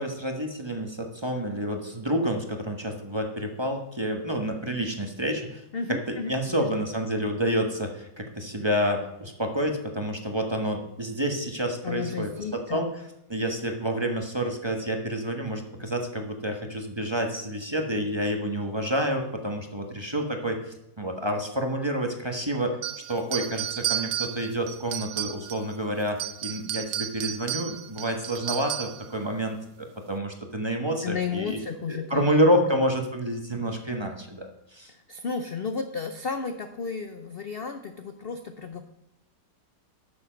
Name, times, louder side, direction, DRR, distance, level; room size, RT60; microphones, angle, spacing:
voice 1, 0.0-5.6 5.9-12.9 13.3-22.8 23.1-31.6 31.9-34.9, equal, 15° right, 3 dB, 1.2 m, -28 dB
voice 2, 5.7-6.7 11.8-12.8 31.0-32.4 34.9-38.8, left 5 dB, 65° left, 7 dB, 0.6 m, -33 dB
sound 1, 22.8-25.7 26.1-29.1, right 11 dB, 75° right, 1.3 m, -32 dB
12.5 x 6.9 x 5.2 m, 0.87 s
omnidirectional pair, 2.0 m